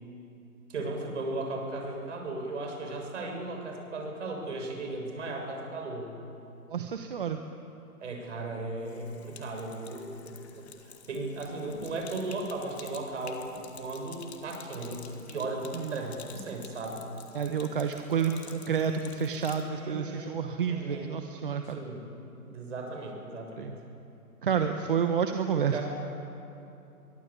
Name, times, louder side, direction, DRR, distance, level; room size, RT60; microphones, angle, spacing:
voice 1, 0.7-6.1 8.0-10.6 11.1-17.0 19.8-21.1 21.6-22.0 22.4-23.7 25.7-25.8, right 2 dB, 50° right, 2 dB, 6.7 m, -36 dB
voice 2, 6.7-7.4 15.7-16.0 17.3-21.8 23.6-23.7 24.4-25.8, right 7 dB, 35° right, 6 dB, 1.2 m, -29 dB
Sink (filling or washing), 8.8-19.7, left 7 dB, 45° left, 2.6 m, -50 dB
24.5 x 23.0 x 8.6 m, 2.8 s
hypercardioid pair, 170°, 46 cm